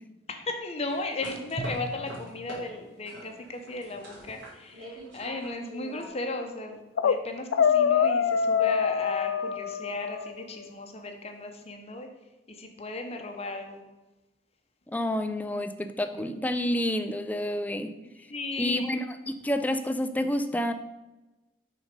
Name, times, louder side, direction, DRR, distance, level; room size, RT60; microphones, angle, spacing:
voice 1, 0.3-12.1 12.5-13.8 18.3-18.9, left 2 dB, 35° left, 4 dB, 0.8 m, -36 dB
sound 1, 0.9-2.6 3.1-6.1, right 1 dB, 75° right, 2.3 m, -44 dB
Drum, 1.6-4.5, right 1 dB, 40° right, 0.6 m, -42 dB
sound 2, 6.7-7.2 7.5-10.3, left 7 dB, 90° left, 0.3 m, -24 dB
voice 2, 14.9-17.9 18.6-20.7, left 1 dB, 10° left, 9 dB, 0.3 m, -29 dB
6.1 x 3.9 x 5.2 m, 1.1 s
head